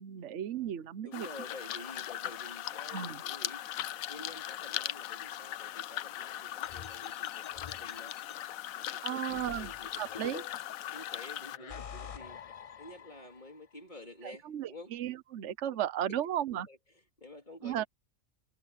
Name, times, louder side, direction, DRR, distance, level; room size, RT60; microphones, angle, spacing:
voice 1, 0.0-1.3 2.9-3.2 9.0-9.7 10.0-10.4 14.2-16.7 17.6-17.8, right 11 dB, 65° right, 1.1 m, -35 dB
voice 2, 1.0-3.7 4.1-8.1 8.7-10.3 10.9-12.4 12.8-14.9 16.7-16.8 17.2-17.9, left 1 dB, 35° left, 3.6 m, -50 dB
sound 1, 1.1-11.6, left 12 dB, 90° left, 1.1 m, -39 dB
sound 2, 6.6-8.4 9.3-10.8 11.4-13.6, left 7 dB, 60° left, 0.3 m, -47 dB
omnidirectional pair, 1.4 m